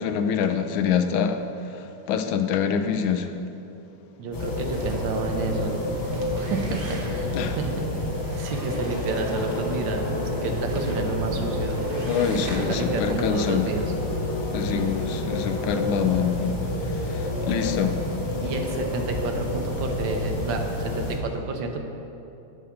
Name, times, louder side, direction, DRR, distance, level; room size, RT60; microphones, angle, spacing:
voice 1, 0.0-1.4 1.7-3.3 7.3-7.6 12.0-13.7 14.5-16.6 17.0-18.0, left 7 dB, 80° left, 8 dB, 1.4 m, -25 dB
voice 2, 4.2-5.8 6.3-7.7 8.4-11.8 12.3-12.4 12.7-13.9 14.7-14.9 18.4-21.8, right 4 dB, 75° right, 4 dB, 1.5 m, -31 dB
sound 1, 4.3-21.2, left 1 dB, 35° left, 1.6 m, -29 dB
sound 2, 4.7-5.3 5.9-7.4 8.2-9.9 10.6-11.1 11.6-13.0, right 2 dB, 50° right, 0.6 m, -44 dB
sound 3, 8.7-15.7, left 1 dB, 65° left, 2.2 m, -35 dB
8.4 x 4.7 x 7.1 m, 2.8 s
omnidirectional pair, 2.1 m